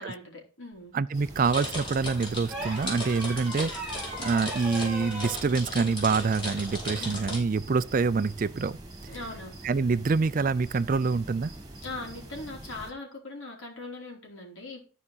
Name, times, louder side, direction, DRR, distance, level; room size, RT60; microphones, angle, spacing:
voice 1, 0.0-0.9 7.0-7.2 9.1-9.6 11.8-14.8, left 2 dB, 80° left, 3.5 m, -40 dB
voice 2, 0.9-3.8 4.2-8.8 9.6-11.5, right 4 dB, 40° right, 0.4 m, -26 dB
sound 1, 1.1-12.9, right 1 dB, 20° right, 1.8 m, -44 dB
sound 2, 1.4-7.4, equal, 25° left, 4.8 m, -36 dB
sound 3, 2.5-5.4 7.1-7.3, equal, ahead, 3.7 m, -38 dB
13.5 x 5.0 x 4.1 m
head